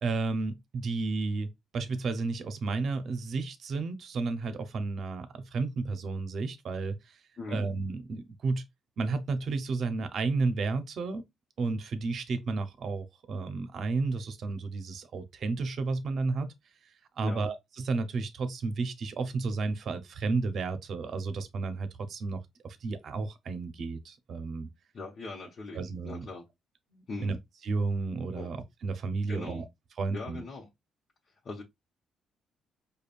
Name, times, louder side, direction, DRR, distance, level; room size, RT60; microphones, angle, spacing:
voice 1, 0.0-7.2 7.5-8.6 9.0-11.2 11.6-16.5 17.2-24.7 25.7-26.3 26.9-27.4 27.6-28.6 28.8-29.6 30.0-30.4, right 3 dB, 60° right, 0.7 m, -32 dB
voice 2, 24.9-26.5 27.1-27.4 28.3-28.5 29.3-29.7 30.1-30.7 31.4-31.6, left 3 dB, 50° left, 1.0 m, -40 dB
5.1 x 2.3 x 2.5 m
cardioid pair, 90°, 0 cm